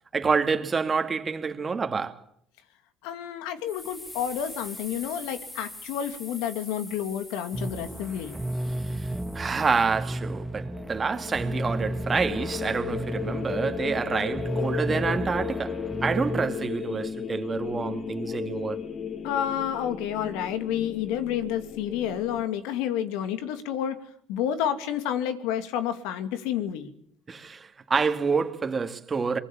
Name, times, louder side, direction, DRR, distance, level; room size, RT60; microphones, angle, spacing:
voice 1, 0.1-2.2 8.8-18.8 27.3-29.4, right 5 dB, 30° right, 2.3 m, -28 dB
voice 2, 3.0-8.3 19.2-24.0 24.3-26.9, left 10 dB, 85° left, 2.6 m, -30 dB
sound 1, 3.7-9.8, left 2 dB, 20° left, 4.6 m, -44 dB
sound 2, 7.5-16.5, right 1 dB, 5° right, 1.6 m, -33 dB
sound 3, 10.5-22.4, left 7 dB, 40° left, 1.9 m, -35 dB
24.0 x 23.0 x 7.4 m
supercardioid pair, 90°, 0 cm